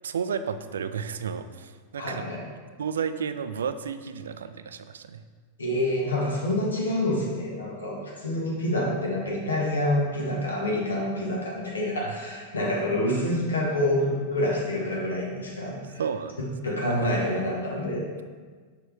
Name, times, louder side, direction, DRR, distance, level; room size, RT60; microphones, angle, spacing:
voice 1, 0.0-2.4 2.8-5.2 12.0-12.1 16.0-16.4 16.7-17.1, right 7 dB, 65° right, 11 dB, 0.3 m, -32 dB
voice 2, 2.0-2.4 5.6-16.0 16.4-18.0, left 1 dB, 75° left, -3 dB, 1.5 m, -27 dB
6.5 x 5.4 x 3.5 m, 1.5 s
figure-of-eight pair, 90°, 0 cm